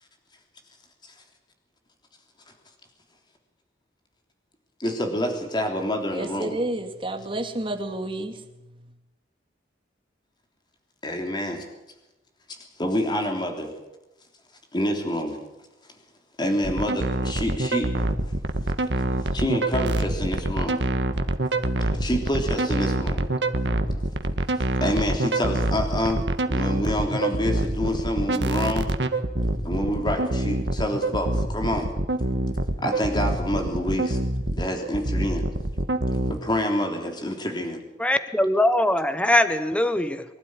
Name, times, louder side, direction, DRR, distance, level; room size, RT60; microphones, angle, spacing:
voice 1, 4.8-6.6 11.0-11.6 12.8-13.7 14.7-15.4 16.4-17.9 19.3-20.8 22.0-23.3 24.8-26.2 26.5-28.9 29.6-31.9 32.8-34.2 34.5-35.4 36.3-37.8, equal, 25° left, 3.4 m, -27 dB
voice 2, 6.1-8.5, right 1 dB, 30° right, 2.3 m, -30 dB
sound 1, 16.6-36.3, right 2 dB, 70° right, 1.5 m, -25 dB
voice 3, 38.0-40.2, left 1 dB, 5° left, 0.9 m, -21 dB
24.0 x 12.5 x 9.8 m
head